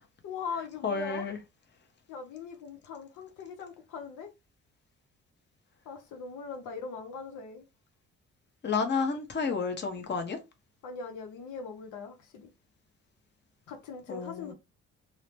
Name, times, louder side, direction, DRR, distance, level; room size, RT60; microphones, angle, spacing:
voice 1, 0.2-1.3 2.1-4.3 5.8-7.7 9.0-9.2 10.8-12.5 13.7-14.5, left 5 dB, 85° left, 0.8 m, -40 dB
voice 2, 0.8-1.4 8.6-10.4 14.1-14.5, left 5 dB, 35° left, 0.8 m, -31 dB
2.7 x 2.1 x 3.1 m
cardioid pair, 90°, 30 cm